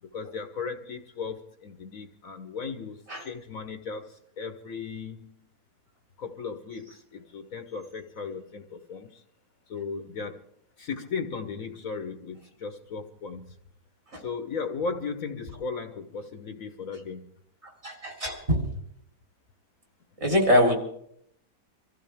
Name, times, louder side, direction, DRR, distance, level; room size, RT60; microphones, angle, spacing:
voice 1, 0.0-5.5 6.2-9.2 9.7-10.5 10.8-13.5 14.2-17.3, left 5 dB, 60° left, 8 dB, 1.4 m, -36 dB
voice 2, 17.8-18.6 20.2-20.8, equal, 40° right, 1 dB, 3.7 m, -23 dB
25.5 x 15.0 x 3.5 m, 0.70 s
omnidirectional pair, 1.7 m